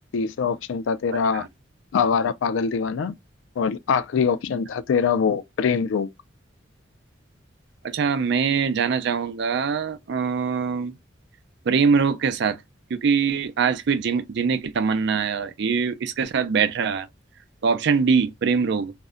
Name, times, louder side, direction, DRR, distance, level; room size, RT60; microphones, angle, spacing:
voice 1, 0.1-1.5 1.9-3.2 3.6-6.1, left 6 dB, 80° left, 0.4 m, -23 dB
voice 2, 1.1-1.5 7.8-10.9 11.7-12.6 12.9-17.1 17.6-18.9, right 5 dB, 60° right, 0.4 m, -23 dB
2.5 x 2.1 x 3.6 m
head